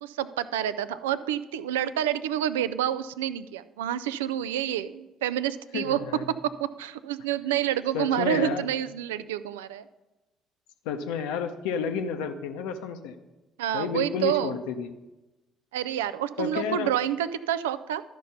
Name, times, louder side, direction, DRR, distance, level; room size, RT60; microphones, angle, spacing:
voice 1, 0.0-6.0 6.3-9.8 13.6-14.6 15.7-18.0, right 11 dB, 70° right, 14 dB, 0.3 m, -28 dB
voice 2, 5.7-6.4 7.9-8.7 10.8-13.2 13.7-14.9 16.4-16.9, left 6 dB, 65° left, 7 dB, 0.6 m, -31 dB
12.5 x 5.1 x 5.7 m, 1.1 s
figure-of-eight pair, 50°, 0 cm